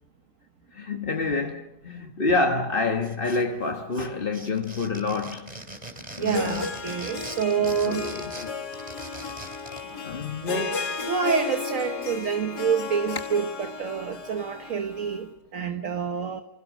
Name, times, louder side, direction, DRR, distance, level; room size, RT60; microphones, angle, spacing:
voice 1, 0.7-5.5 6.2-6.7 7.6-8.5 10.0-11.0, left 3 dB, 35° left, 1.5 m, -28 dB
sound 1, 3.0-3.7 3.9-9.9, right 1 dB, 25° right, 3.2 m, -41 dB
Harp, 6.2-15.2, left 4 dB, 75° left, 2.6 m, -34 dB
voice 2, 6.2-8.0 11.1-16.4, right 7 dB, 55° right, 1.5 m, -27 dB
29.0 x 25.5 x 6.4 m
omnidirectional pair, 1.7 m